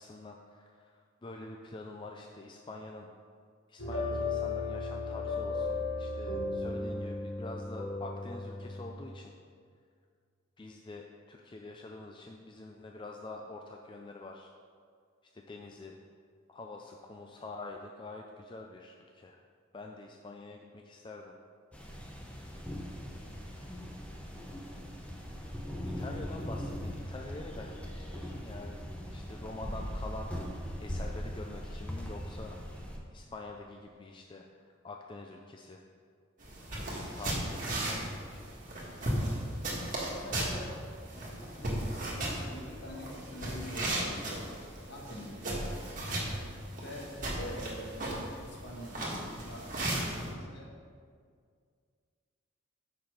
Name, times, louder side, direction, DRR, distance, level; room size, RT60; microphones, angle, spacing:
voice 1, 0.0-3.1 3.7-9.3 10.6-14.5 15.3-16.0 16.5-19.4 19.7-21.4 25.8-28.8 29.1-32.6 33.1-35.8 36.7-38.6, left 2 dB, 25° left, 1 dB, 0.4 m, -46 dB
sound 1, 3.8-8.9, left 3 dB, 80° left, 1.5 m, -35 dB
sound 2, 21.7-33.0, equal, 5° left, 0.8 m, -40 dB
sound 3, 36.4-50.3, right 1 dB, 45° right, 1.7 m, -36 dB
voice 2, 40.1-40.8 41.1-44.5 44.9-46.0 46.8-48.1 48.4-50.7, left 1 dB, 60° left, -2 dB, 1.6 m, -45 dB
7.0 x 5.9 x 5.0 m, 2.1 s
head